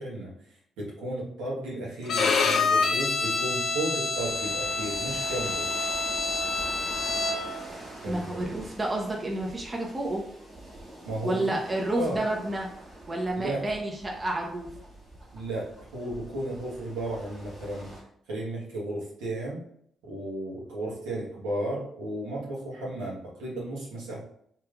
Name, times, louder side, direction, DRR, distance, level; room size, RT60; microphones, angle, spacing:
voice 1, 0.0-5.7 8.0-8.5 11.0-11.6 11.9-12.2 13.3-13.6 15.3-17.9 18.3-19.6 20.0-24.3, right 1 dB, 85° right, -6 dB, 1.2 m, -34 dB
Bowed string instrument, 2.1-7.6, left 4 dB, 65° left, 0.5 m, -27 dB
sound 1, 4.1-18.0, right 1 dB, 50° right, 1.4 m, -45 dB
voice 2, 8.1-10.2 11.2-12.7 13.1-14.7, right 1 dB, 30° right, 0 dB, 0.8 m, -30 dB
3.2 x 2.9 x 2.4 m, 0.67 s
supercardioid pair, 50°, 0 cm